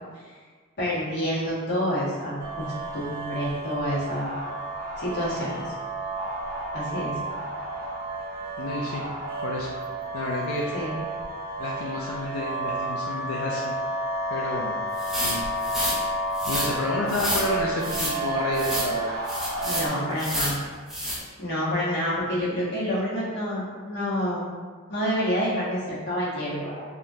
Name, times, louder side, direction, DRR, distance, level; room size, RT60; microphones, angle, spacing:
voice 1, 0.8-4.4 5.0-5.7 6.7-7.2 10.7-11.0 19.6-20.6 21.4-24.4 24.9-26.8, equal, 50° left, -9 dB, 1.2 m, -28 dB
sound 1, 2.4-19.9, right 2 dB, 45° right, 0.7 m, -31 dB
voice 2, 8.6-9.0 9.4-9.7 10.1-10.7 11.6-13.8 14.3-14.8 15.2-15.9 16.5-19.1, left 2 dB, 90° left, -3 dB, 0.4 m, -30 dB
sound 2, 15.0-16.0 16.3-16.7 17.1-17.5 17.8-18.1 18.5-18.9 19.3-19.9 20.2-20.6 20.9-21.2, equal, ahead, 0.5 m, -29 dB
3.5 x 2.3 x 2.7 m, 1.5 s
head